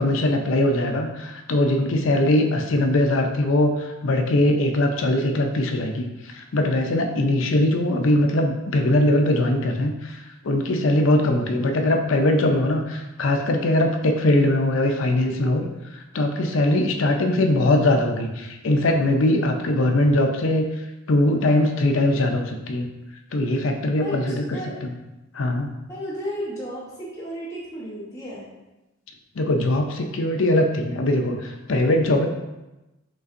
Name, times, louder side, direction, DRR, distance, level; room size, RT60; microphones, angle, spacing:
voice 1, 0.0-15.7 16.1-20.6 21.1-22.9 23.3-24.9 25.3-25.7 29.4-32.3, left 1 dB, 60° left, 4 dB, 0.5 m, -21 dB
voice 2, 25.9-28.5, equal, 15° left, -9 dB, 0.9 m, -33 dB
5.4 x 3.3 x 2.5 m, 1.0 s
head